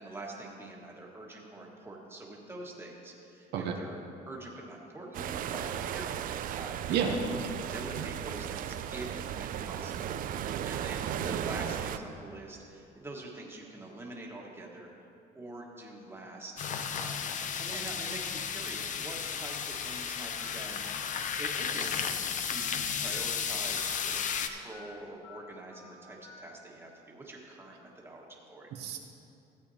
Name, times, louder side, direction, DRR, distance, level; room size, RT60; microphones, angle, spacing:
voice 1, 0.0-4.0 4.3-7.2 7.7-14.9 15.3-17.3 17.6-28.7, right 2 dB, 15° right, -2 dB, 1.5 m, -45 dB
sound 1, 5.1-12.0, right 10 dB, 55° right, 0.4 m, -36 dB
voice 2, 6.9-7.4 11.1-11.4 28.8-29.0, right 6 dB, 80° right, 2 dB, 0.8 m, -31 dB
sound 2, 16.6-24.5, left 7 dB, 50° left, 0.6 m, -34 dB
Telephone, 19.5-19.7 20.4-20.6 21.2-21.4 21.9-22.1 22.5-22.7 23.1-23.3 23.7-23.9 24.2-24.4 24.7-24.9 25.2-25.4 25.7-25.9 26.2-26.4, left 6 dB, 20° left, 1.3 m, -51 dB
15.0 x 8.2 x 2.8 m, 2.7 s
cardioid pair, 110°, 17 cm